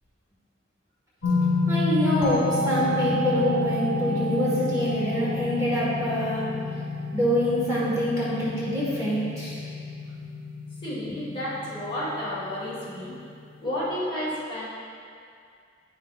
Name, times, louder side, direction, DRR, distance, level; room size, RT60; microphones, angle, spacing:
sound 1, 1.2-13.8, left 2 dB, 75° left, 1.1 m, -29 dB
voice 1, 1.7-6.4 7.1-9.6, equal, 15° right, -9 dB, 1.4 m, -25 dB
voice 2, 10.8-13.2 13.6-14.7, equal, 25° left, -9 dB, 1.7 m, -31 dB
9.3 x 5.7 x 2.4 m, 2.3 s
head